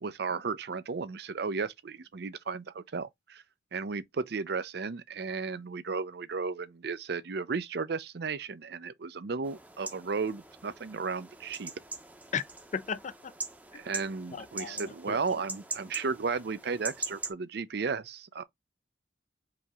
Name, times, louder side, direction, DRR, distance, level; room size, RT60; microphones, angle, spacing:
voice 1, 0.0-3.4 3.7-11.7 13.7-18.4, right 4 dB, 60° right, 0.5 m, -34 dB
sound 1, 9.4-17.3, right 3 dB, 10° right, 0.7 m, -42 dB
voice 2, 12.7-13.3 13.7-13.8 14.3-15.4, left 6 dB, 40° left, 0.4 m, -36 dB
5.0 x 2.8 x 3.5 m
head